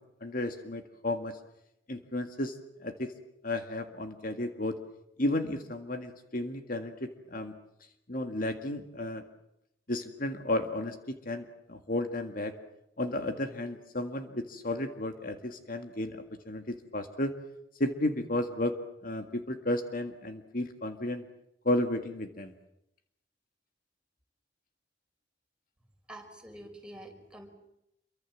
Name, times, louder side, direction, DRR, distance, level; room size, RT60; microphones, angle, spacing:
voice 1, 0.0-1.4 1.9-2.5 2.8-3.1 3.4-4.8 5.2-7.5 8.1-9.2 9.9-12.5 13.0-17.3 17.8-18.7 19.0-21.2 21.6-22.5, left 1 dB, 50° left, 6 dB, 2.0 m, -33 dB
voice 2, 26.1-27.5, right 1 dB, 5° right, 3 dB, 4.8 m, -47 dB
27.5 x 24.0 x 7.5 m, 0.81 s
head